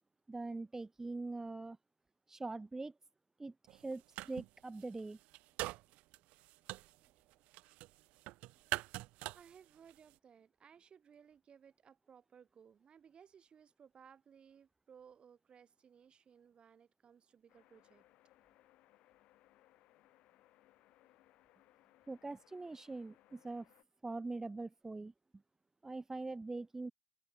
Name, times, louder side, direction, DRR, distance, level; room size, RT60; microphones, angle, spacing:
voice 1, 0.3-1.8 2.3-2.9 3.4-5.2 22.1-23.7 24.0-25.1 25.8-26.9, right 3 dB, 20° right, 0.8 m, -43 dB
sound 1, 3.7-4.5 4.8-10.1, right 20 dB, 75° right, 0.9 m, -44 dB
voice 2, 9.3-18.0 26.5-26.6, right 7 dB, 50° right, 7.5 m, -61 dB
sound 2, 17.5-23.8, left 16 dB, 75° left, 7.5 m, -68 dB
open air
hypercardioid pair, 50°, 2 cm